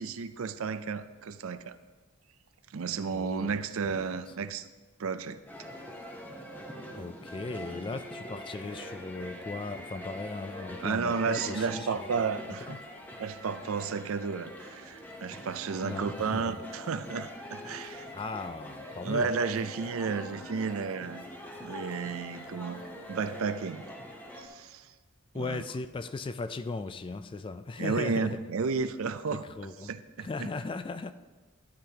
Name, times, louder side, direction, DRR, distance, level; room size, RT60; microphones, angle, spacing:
voice 1, 0.0-1.8 2.7-4.6 5.0-5.4 10.8-12.8 13.2-18.1 19.0-21.2 21.6-22.8 23.1-23.9 24.4-24.9 25.3-25.6 27.8-29.4 29.8-30.5, right 5 dB, 70° right, 13 dB, 0.5 m, -32 dB
voice 2, 3.1-3.6 4.0-4.5 7.0-12.8 15.8-16.6 18.1-19.3 25.3-28.4 29.3-29.9 30.2-31.1, left 3 dB, 25° left, 12 dB, 0.3 m, -38 dB
sound 1, 5.5-24.5, equal, 10° left, 0.9 m, -44 dB
12.5 x 9.8 x 2.9 m, 1.3 s
head